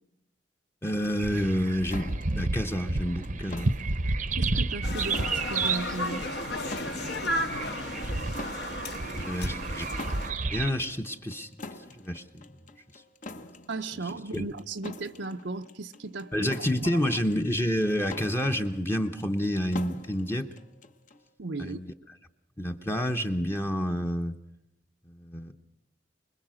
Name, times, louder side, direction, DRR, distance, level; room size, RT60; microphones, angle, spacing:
voice 1, 0.8-3.7 9.2-10.1 10.5-11.5 11.9-12.4 14.3-14.5 16.3-20.5 21.6-21.9 22.6-24.3 25.1-25.5, equal, 15° left, 4 dB, 0.9 m, -29 dB
sound 1, 1.2-10.7, right 3 dB, 45° right, 0.8 m, -31 dB
sound 2, 1.9-21.3, left 2 dB, 45° left, 1.0 m, -46 dB
voice 2, 4.4-6.3 13.7-16.5 16.8-17.2 21.4-21.8, right 3 dB, 85° right, 5 dB, 0.8 m, -36 dB
sound 3, 4.8-10.3, left 2 dB, 65° left, 1.7 m, -34 dB
25.5 x 21.0 x 6.4 m, 0.89 s
head